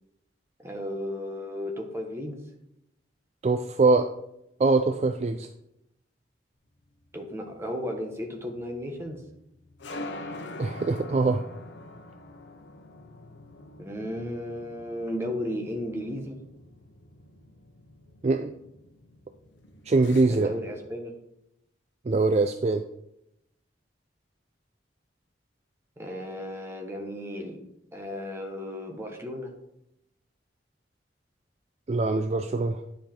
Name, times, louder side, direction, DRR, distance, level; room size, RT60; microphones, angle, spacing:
voice 1, 0.6-2.4 7.1-9.2 13.8-16.4 20.3-21.1 26.0-27.6 27.9-29.5, left 1 dB, 15° right, 2 dB, 1.3 m, -34 dB
voice 2, 3.4-4.1 4.6-5.5 10.6-11.4 18.2-18.5 19.9-20.5 22.1-22.8 31.9-32.8, right 3 dB, 35° right, 8 dB, 0.4 m, -23 dB
sound 1, 6.8-20.9, left 2 dB, 80° left, 0.9 m, -45 dB
10.0 x 5.0 x 4.4 m, 0.81 s
head